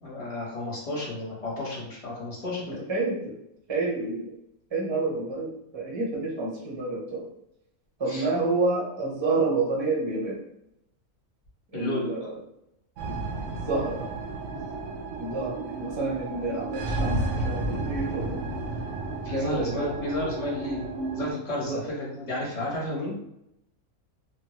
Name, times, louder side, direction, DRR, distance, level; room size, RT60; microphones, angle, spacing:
voice 1, 0.0-2.9 8.1-8.3 11.7-12.1 19.2-20.9 21.1-23.2, left 1 dB, 30° left, -5 dB, 0.9 m, -32 dB
voice 2, 2.9-3.3 3.7-4.3 4.7-7.2 8.0-10.4 11.7-12.3 13.0-13.2 13.5-14.1 14.5-14.6 15.2-18.5 19.3-19.9 21.6-21.8, right 3 dB, 30° right, -3 dB, 0.5 m, -29 dB
sound 1, 13.0-21.3, right 2 dB, 70° right, 0.8 m, -32 dB
2.8 x 2.2 x 2.9 m, 0.80 s
omnidirectional pair, 1.5 m